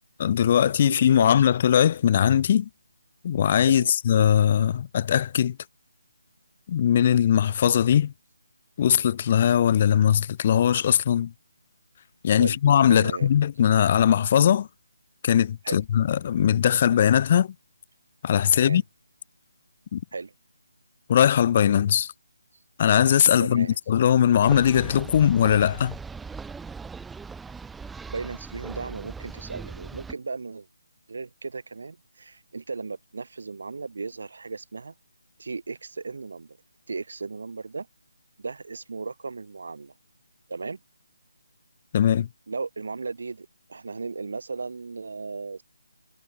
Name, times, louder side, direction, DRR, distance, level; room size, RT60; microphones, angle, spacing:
voice 1, 0.2-2.7 3.2-5.6 6.7-8.1 8.8-11.3 12.2-14.7 15.2-17.5 18.2-18.8 19.9-20.0 21.1-22.1 22.8-26.0 41.9-42.3, left 9 dB, 30° left, 1.3 m, -20 dB
voice 2, 0.9-1.3 3.7-3.9 12.4-12.6 12.9-13.3 15.6-15.8 18.5-18.8 20.1-20.3 23.4-23.8 28.1-30.7 31.1-34.9 35.4-36.6 36.9-37.9 38.4-39.9 40.5-40.8 42.5-45.6, right 4 dB, 65° right, 3.7 m, -36 dB
sound 1, 24.5-30.1, right 5 dB, 5° right, 1.6 m, -39 dB
figure-of-eight pair, 165°, 0 cm